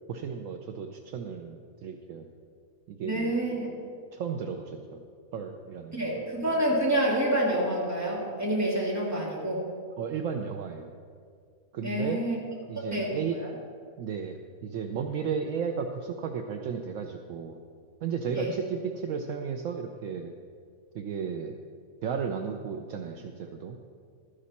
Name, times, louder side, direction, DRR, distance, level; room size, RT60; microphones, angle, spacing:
voice 1, 0.1-2.3 2.9-3.3 4.1-5.0 5.3-6.2 10.0-10.9 11.7-12.2 12.7-13.4 14.0-17.6 18.0-20.3 20.9-21.6 22.0-23.8, right 6 dB, 70° right, 5 dB, 1.0 m, -34 dB
voice 2, 3.0-3.7 5.9-9.6 11.8-12.4 12.8-13.1 18.3-18.5, right 1 dB, 10° right, -4 dB, 2.3 m, -27 dB
13.0 x 10.0 x 4.2 m, 2.1 s
omnidirectional pair, 1.5 m